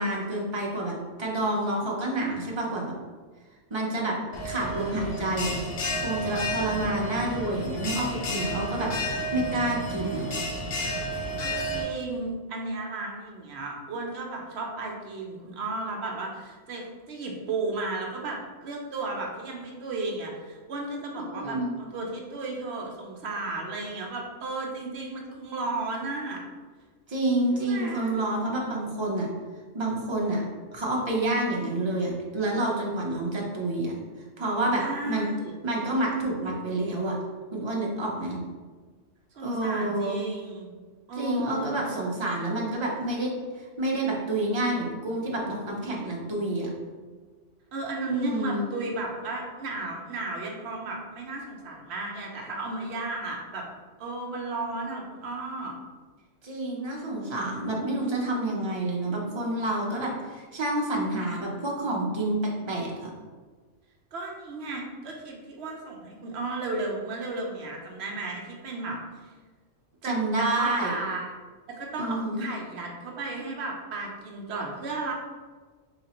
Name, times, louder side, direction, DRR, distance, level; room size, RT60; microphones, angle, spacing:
voice 1, 0.0-2.9 3.7-4.2 4.4-5.5 6.0-8.9 9.3-10.3 21.3-21.7 27.1-29.3 29.7-30.4 30.7-33.9 34.4-35.3 35.6-37.2 37.5-38.4 39.4-40.2 41.2-46.7 48.1-48.7 56.4-63.1 70.0-70.9 72.0-72.5, right 1 dB, 30° right, -3 dB, 0.6 m, -28 dB
Bell, 4.3-11.8, equal, 55° left, 0.8 m, -31 dB
voice 2, 11.4-26.4 27.5-28.1 34.8-35.5 39.4-40.7 41.1-41.8 47.7-53.7 54.0-55.7 64.1-69.0 70.0-71.3 71.7-75.1, right 3 dB, 60° right, 0 dB, 0.9 m, -34 dB
4.1 x 3.2 x 2.9 m, 1.4 s
omnidirectional pair, 1.3 m